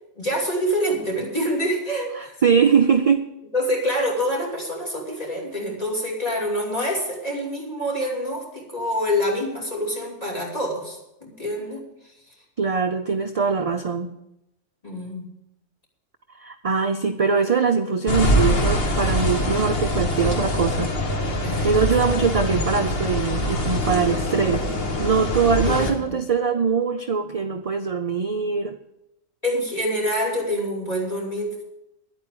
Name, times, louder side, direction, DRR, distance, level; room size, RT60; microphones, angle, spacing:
voice 1, 0.1-2.4 3.5-11.8 14.8-15.3 21.4-21.7 25.7-26.0 29.4-31.6, equal, 30° left, -1 dB, 3.0 m, -26 dB
voice 2, 2.2-3.3 12.6-14.1 16.4-24.7 25.0-28.8, right 5 dB, 50° right, 8 dB, 0.4 m, -22 dB
sound 1, 18.1-25.9, left 1 dB, 50° left, 1.6 m, -23 dB
10.5 x 8.8 x 8.5 m, 0.91 s
omnidirectional pair, 1.3 m